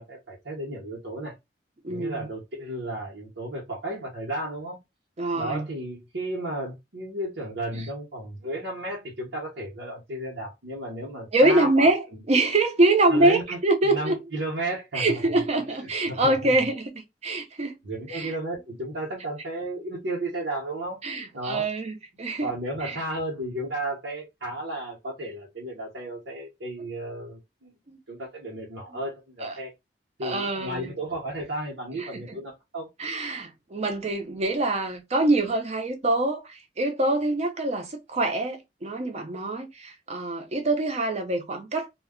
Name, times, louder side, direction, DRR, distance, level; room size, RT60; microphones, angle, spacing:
voice 1, 0.0-1.3 1.9-4.8 5.3-12.2 13.1-15.4 15.8-16.5 17.8-21.0 21.3-21.7 22.4-27.7 28.1-29.7 30.2-32.9, right 1 dB, 90° right, 0.9 m, -33 dB
voice 2, 1.8-2.3 5.2-5.7 7.7-7.8 11.3-14.2 14.9-17.8 18.1-18.3 21.0-22.5 22.8-23.0 27.9-28.0 29.4-29.5 30.2-30.9 32.0-32.4 33.0-41.9, right 2 dB, 40° right, 0.6 m, -25 dB
2.2 x 2.2 x 3.6 m
head